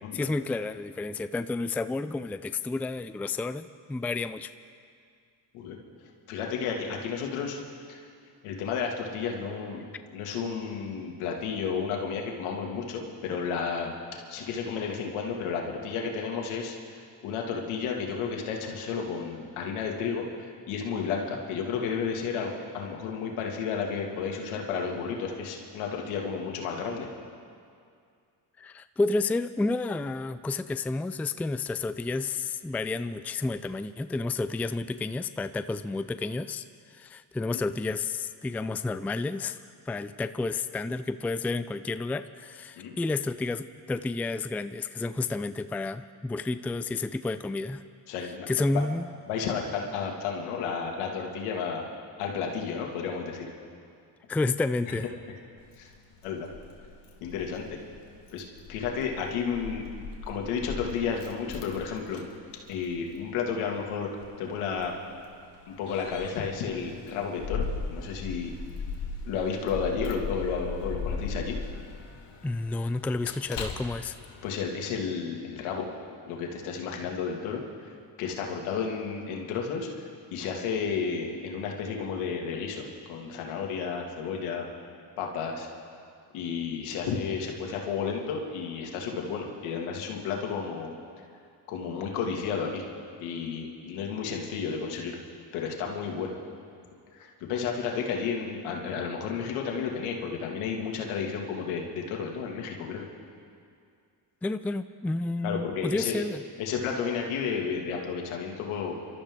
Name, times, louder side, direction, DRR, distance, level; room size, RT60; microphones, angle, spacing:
voice 1, 0.1-4.5 28.6-36.6 36.9-39.6 39.9-47.8 48.5-49.1 54.3-55.1 72.4-74.2 104.4-106.4, left 3 dB, 5° left, 12 dB, 0.4 m, -30 dB
voice 2, 6.3-7.6 7.9-8.0 8.4-9.8 10.1-14.0 14.3-16.7 17.2-27.1 37.5-37.6 42.8-43.0 48.1-48.5 49.3-51.9 52.2-53.5 55.8-55.9 56.2-56.5 57.2-57.8 58.3-59.8 60.3-62.3 62.7-64.1 64.4-64.9 65.7-67.6 67.9-68.5 69.2-71.6 74.4-75.9 76.3-77.6 78.2-79.9 80.3-84.7 85.2-85.7 86.3-90.9 91.7-92.8 93.2-95.2 95.5-96.4 97.1-103.0 105.4-106.2 106.6-108.9, left 6 dB, 85° left, 1 dB, 2.3 m, -32 dB
Keys jangling, 55.6-74.6, left 4 dB, 55° left, 2.3 m, -39 dB
26.0 x 13.0 x 3.7 m, 2.3 s
supercardioid pair, 65°, 49 cm